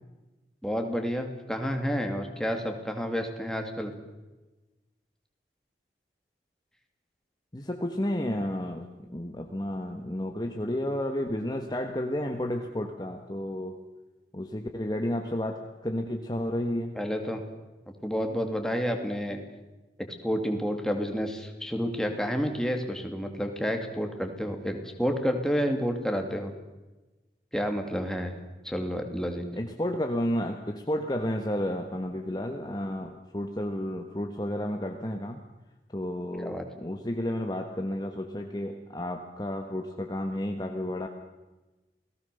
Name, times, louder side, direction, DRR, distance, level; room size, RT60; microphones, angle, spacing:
voice 1, 0.6-3.9 17.0-17.4 18.0-19.4 20.2-26.5 27.5-28.3 28.6-29.5 36.4-36.6, equal, 5° left, 4 dB, 2.5 m, -30 dB
voice 2, 7.5-13.8 14.3-17.0 29.5-35.4 35.9-41.1, left 1 dB, 25° left, 4 dB, 1.4 m, -32 dB
28.5 x 18.5 x 6.9 m, 1.1 s
head